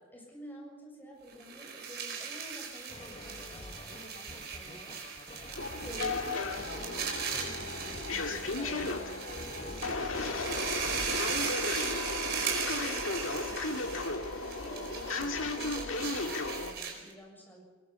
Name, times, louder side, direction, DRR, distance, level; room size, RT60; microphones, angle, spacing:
voice 1, 0.1-5.0 5.8-17.6, left 1 dB, 10° left, -1 dB, 7.1 m, -50 dB
sound 1, 1.3-17.1, right 6 dB, 55° right, 4.8 m, -38 dB
sound 2, 2.9-11.6, left 2 dB, 30° left, 1.6 m, -47 dB
sound 3, 5.5-16.7, left 3 dB, 85° left, 2.0 m, -35 dB
22.5 x 21.5 x 5.8 m, 1.4 s
head